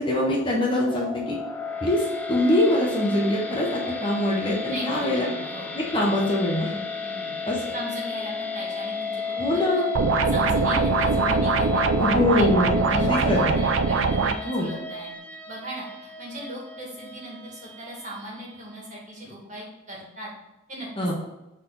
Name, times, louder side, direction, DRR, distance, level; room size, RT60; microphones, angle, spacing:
voice 1, 0.0-1.4 1.8-5.3 5.7-6.8 7.5-7.7 9.4-9.9 12.0-13.6 14.4-14.7 21.0-21.1, left 1 dB, 25° left, -3 dB, 1.1 m, -24 dB
sound 1, 0.8-19.1, left 5 dB, 5° left, 0.5 m, -33 dB
voice 2, 4.7-6.3 7.0-7.4 7.7-9.8 10.3-15.1 15.5-15.9 16.2-20.3 20.7-20.9, equal, 35° right, -4 dB, 2.2 m, -38 dB
sound 2, 10.0-14.3, right 4 dB, 70° right, 0.5 m, -22 dB
6.3 x 4.2 x 4.0 m, 1.0 s
head